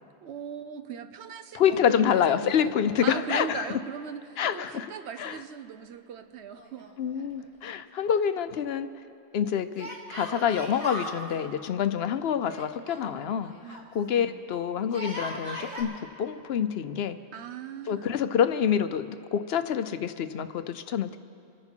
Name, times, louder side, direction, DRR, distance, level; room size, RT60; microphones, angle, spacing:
voice 1, 0.2-6.9 13.6-13.9 14.2-14.4 17.3-18.1, right 7 dB, 80° right, 9 dB, 1.0 m, -39 dB
voice 2, 1.5-3.7 4.4-4.9 5.2-5.4 7.0-8.9 9.3-13.5 13.9-15.9 16.2-17.2 17.9-21.2, left 8 dB, 70° left, 11 dB, 0.9 m, -27 dB
Yell, 6.5-7.4 7.7-7.8 9.8-11.2 12.5-13.9 14.8-15.8, equal, 50° right, 2.3 m, -38 dB
28.0 x 9.8 x 4.5 m, 2.7 s
omnidirectional pair, 1.1 m